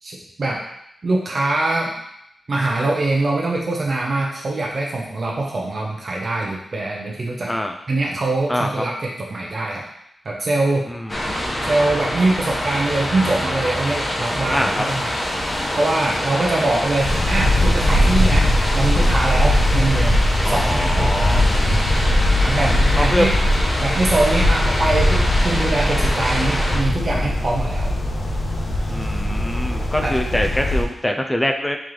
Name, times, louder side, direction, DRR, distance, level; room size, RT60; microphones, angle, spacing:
voice 1, 0.0-0.6 1.0-1.9 2.5-7.6 7.9-9.8 10.2-10.9 11.6-15.2 15.8-20.1 20.5-21.5 22.4-23.3 23.8-27.9 30.0-30.2, right 2 dB, 45° right, -2 dB, 0.6 m, -23 dB
voice 2, 8.5-8.8 10.9-11.6 14.5-14.8 20.4-21.5 22.6-23.2 28.9-31.8, left 1 dB, 10° left, 4 dB, 0.3 m, -24 dB
sound 1, 11.1-26.8, left 1 dB, 25° left, 1.0 m, -25 dB
sound 2, 17.0-30.8, left 1 dB, 50° left, 0.8 m, -20 dB
4.5 x 3.1 x 3.8 m, 0.77 s
wide cardioid pair, 150°, 0 cm